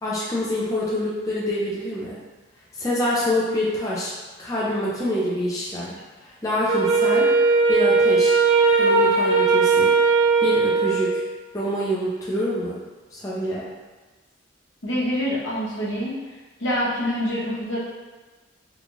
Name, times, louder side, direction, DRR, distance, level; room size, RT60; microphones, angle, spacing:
voice 1, 0.0-2.2 2.8-4.1 4.4-6.0 6.2-7.3 7.7-8.3 8.8-9.9 10.4-11.2 11.5-12.8 13.1-13.7, left 1 dB, 15° left, -7 dB, 0.5 m, -26 dB
Wind instrument woodwind instrument, 6.7-11.3, right 4 dB, 70° right, 0.5 m, -18 dB
voice 2, 14.8-16.2 16.6-17.8, equal, 70° left, -7 dB, 1.0 m, -25 dB
3.7 x 2.4 x 3.0 m, 1.3 s
head